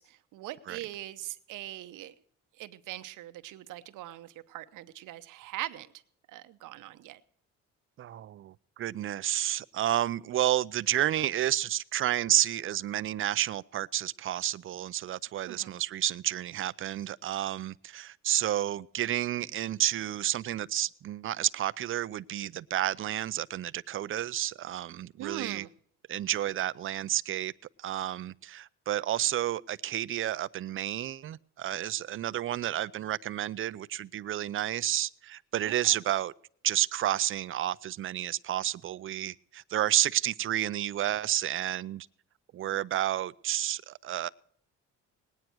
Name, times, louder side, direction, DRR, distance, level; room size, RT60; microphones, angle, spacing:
voice 1, 0.0-2.1 2.6-5.9 6.3-7.2 15.5-15.7 25.2-25.7 35.7-36.0, right 15 dB, 80° right, 0.9 m, -41 dB
voice 2, 8.0-25.6 26.1-27.5 27.8-36.3 36.6-42.1 42.5-44.3, right 12 dB, 45° right, 0.5 m, -30 dB
19.5 x 9.5 x 4.5 m
cardioid pair, 105°, 31 cm